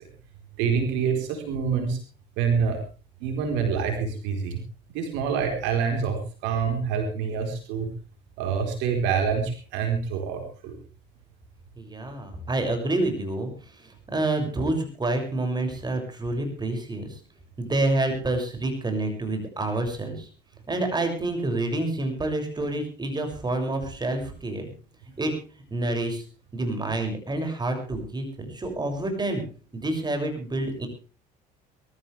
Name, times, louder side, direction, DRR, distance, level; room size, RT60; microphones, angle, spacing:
voice 1, 0.6-2.0 2.4-2.8 3.2-4.6 4.9-7.9 8.4-10.8, right 6 dB, 80° right, 4 dB, 4.3 m, -26 dB
voice 2, 11.8-17.2 17.6-20.3 20.7-24.7 25.2-26.2 26.5-29.4 29.7-30.9, right 2 dB, 20° right, 5 dB, 6.7 m, -28 dB
23.0 x 14.0 x 3.4 m, 0.37 s
supercardioid pair, 85°, 18 cm